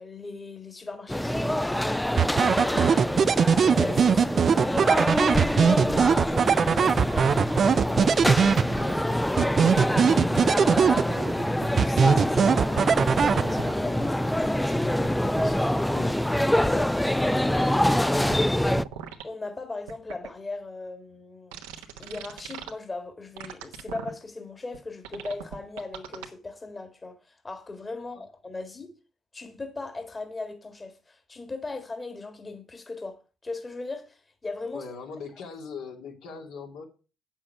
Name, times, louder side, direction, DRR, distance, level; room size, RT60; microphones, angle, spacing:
voice 1, 0.0-4.4 4.6-8.3 8.8-9.9 10.7-11.4 11.7-15.1 15.4-16.2 16.5-18.3 19.2-21.6 22.0-28.9 29.3-34.8, left 3 dB, 30° left, 1.7 m, -39 dB
sound 1, 1.1-18.8, left 1 dB, 5° left, 0.5 m, -25 dB
sound 2, 2.2-9.0 9.4-11.4 11.8-13.8, right 7 dB, 50° right, 0.4 m, -21 dB
sound 3, 11.4-11.8 13.3-14.0 14.4-14.5 14.8-15.4 18.1-18.4 18.8-19.2 19.9-20.3 21.5-22.7 23.4-24.1 24.7-24.8 25.0-26.3, right 9 dB, 85° right, 1.1 m, -40 dB
voice 2, 34.7-36.8, left 5 dB, 75° left, 2.5 m, -40 dB
8.6 x 7.3 x 5.6 m
hypercardioid pair, 55°, 0 cm